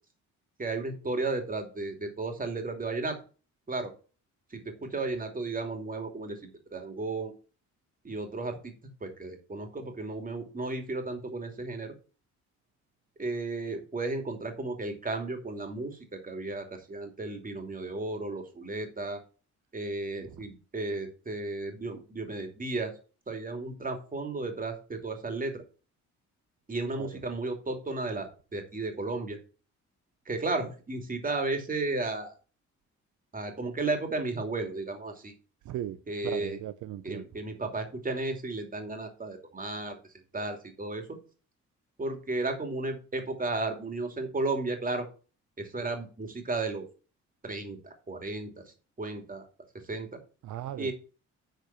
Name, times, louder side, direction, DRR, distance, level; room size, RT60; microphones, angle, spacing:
voice 1, 0.6-3.2 3.7-3.9 4.5-7.3 8.0-8.7 9.0-11.9 13.2-19.2 19.7-22.9 23.3-25.6 26.7-29.4 30.3-32.3 33.3-35.3 36.1-36.6 37.0-40.0 40.3-41.2 42.0-45.1 45.6-46.9 47.4-48.6 49.0-49.5 49.9-50.1 50.8-50.9, right 3 dB, 30° right, 2.8 m, -34 dB
voice 2, 35.7-36.0 36.2-37.2 50.4-50.9, right 12 dB, 75° right, 0.7 m, -37 dB
9.0 x 4.6 x 6.8 m
cardioid pair, 90°, 30 cm